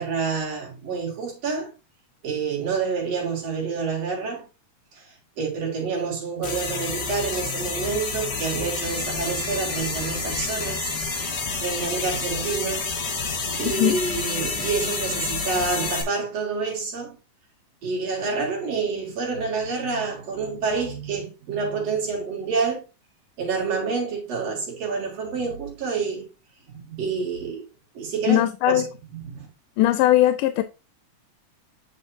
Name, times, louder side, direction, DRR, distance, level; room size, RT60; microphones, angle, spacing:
voice 1, 0.0-1.7 2.2-4.5 4.9-10.9 11.6-12.9 13.6-17.2 17.8-22.8 23.4-26.3 26.7-27.7 28.0-29.5, right 5 dB, 55° right, 3.7 m, -28 dB
sound 1, 6.4-16.0, left 4 dB, 40° left, 1.8 m, -29 dB
voice 2, 28.3-28.8 29.8-30.6, left 14 dB, 90° left, 2.1 m, -19 dB
7.7 x 6.2 x 2.8 m
omnidirectional pair, 3.6 m